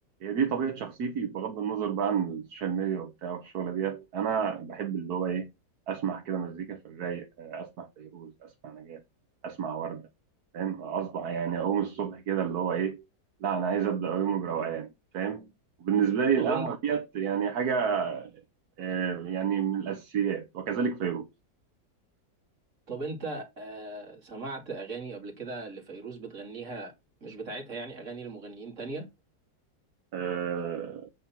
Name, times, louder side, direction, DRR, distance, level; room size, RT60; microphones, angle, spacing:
voice 1, 0.2-5.5 5.9-9.0 9.4-10.0 10.5-13.0 13.4-14.9 15.1-15.5 15.8-18.3 18.8-21.3 30.1-31.1, right 7 dB, 70° right, 1.5 m, -30 dB
voice 2, 16.4-16.7 22.9-26.9 27.2-29.1, right 3 dB, 45° right, 2.8 m, -38 dB
8.6 x 4.2 x 5.8 m
omnidirectional pair, 1.8 m